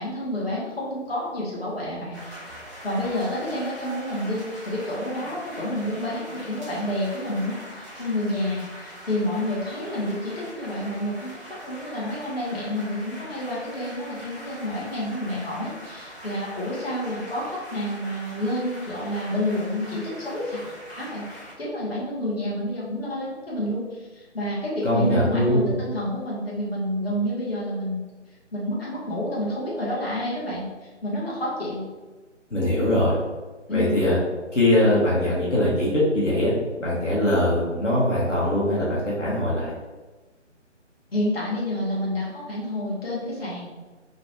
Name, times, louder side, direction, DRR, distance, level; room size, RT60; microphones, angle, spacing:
voice 1, 0.0-2.2 2.5-2.6 2.8-11.3 11.6-20.6 20.9-21.2 21.6-28.0 28.5-31.8 33.7-33.9 41.1-43.7, left 1 dB, 50° left, -6 dB, 1.3 m, -29 dB
sound 1, 2.1-21.5, equal, 15° left, 0.6 m, -42 dB
voice 2, 24.8-25.7 32.5-33.1 33.7-34.2 34.5-36.5 36.8-39.7, left 1 dB, 75° left, -6 dB, 1.2 m, -21 dB
4.3 x 2.2 x 3.0 m, 1.2 s
figure-of-eight pair, 150°, 37 cm